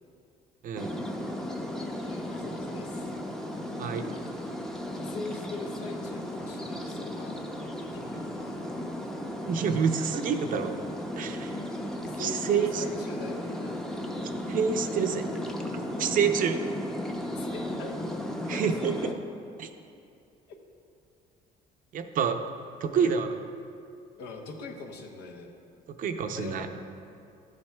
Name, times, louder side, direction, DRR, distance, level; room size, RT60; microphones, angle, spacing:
voice 1, 0.6-1.0 3.8-4.0 9.5-10.7 11.2-11.6 12.2-12.8 14.5-15.2 16.0-16.6 18.5-18.9 19.6-19.7 21.9-22.4 22.8-23.3 26.0-26.7, right 7 dB, 55° right, 7 dB, 0.5 m, -27 dB
sound 1, 0.8-19.1, left 1 dB, 5° left, 0.5 m, -35 dB
voice 2, 2.0-3.1 4.9-7.4 7.8-8.8 11.7-11.8 12.0-13.8 14.8-15.1 17.3-18.0 18.5-19.2 22.9-23.3 24.2-25.5 26.3-26.7, left 3 dB, 85° left, 2 dB, 0.9 m, -42 dB
11.5 x 7.3 x 2.2 m, 2.4 s
cardioid pair, 110°, 17 cm